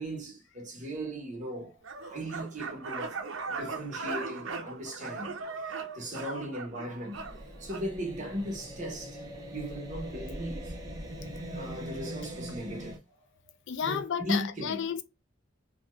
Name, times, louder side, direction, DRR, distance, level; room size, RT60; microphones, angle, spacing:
voice 1, 0.0-1.7 2.0-3.2 3.5-7.2 7.6-9.2 9.5-10.7 11.5-13.0 13.8-14.8, equal, 40° right, 1.0 m, -37 dB
sound 1, 1.8-7.9, right 4 dB, 80° right, 0.6 m, -38 dB
sound 2, 7.1-13.0, equal, 20° right, 0.7 m, -41 dB
voice 2, 13.7-15.0, left 7 dB, 65° left, 0.4 m, -32 dB
2.9 x 2.3 x 3.0 m
head